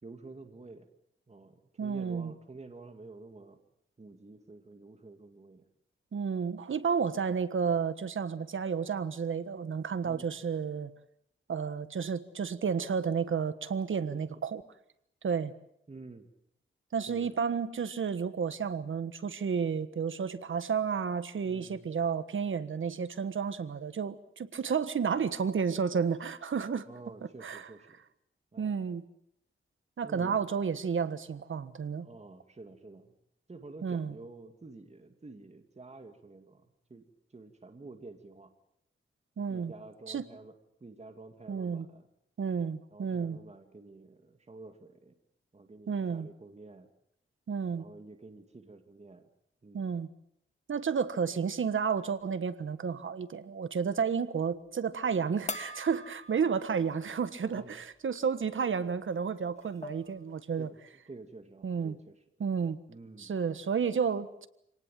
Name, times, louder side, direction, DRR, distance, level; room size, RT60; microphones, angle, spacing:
voice 1, 0.0-0.9 1.3-3.6 4.0-5.7 10.0-10.3 14.1-14.3 15.9-16.3 17.1-17.4 21.4-21.8 26.9-28.0 28.5-28.8 30.0-30.4 32.0-33.1 33.5-38.5 39.5-40.5 40.8-42.1 42.9-45.1 45.5-46.9 47.7-49.3 49.6-49.9 57.5-57.7 60.6-60.8 61.1-62.2 62.9-63.3, right 3 dB, 30° right, 2.3 m, -50 dB
voice 2, 1.8-2.3 6.1-10.9 11.5-14.6 15.2-15.5 16.9-26.9 27.4-27.7 28.6-29.0 30.0-32.1 33.8-34.1 39.4-39.7 40.1-40.2 41.5-41.9 42.4-43.4 45.9-46.3 47.5-47.8 49.7-50.1 50.7-60.7 61.6-62.0 62.4-62.8 63.2-64.5, right 6 dB, 75° right, 1.4 m, -31 dB
sound 1, 55.5-57.1 57.5-57.6 59.1-59.2 59.6-60.2, left 2 dB, 35° left, 2.0 m, -42 dB
26.5 x 18.5 x 7.7 m
wide cardioid pair, 80°, 21 cm